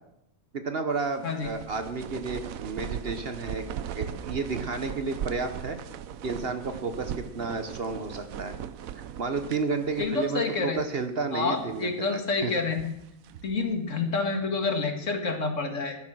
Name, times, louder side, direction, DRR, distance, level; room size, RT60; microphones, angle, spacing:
voice 1, 0.5-3.6 3.9-5.8 6.2-8.6 8.9-12.6, right 4 dB, 45° right, 8 dB, 1.1 m, -32 dB
sound 1, 1.0-10.5 10.8-10.9 11.5-12.0 12.5-13.6, right 9 dB, 75° right, 1.1 m, -39 dB
voice 2, 10.0-10.8 11.3-12.9 13.4-16.0, left 4 dB, 60° left, 5 dB, 2.2 m, -28 dB
13.0 x 11.0 x 6.1 m, 0.83 s
omnidirectional pair, 1.5 m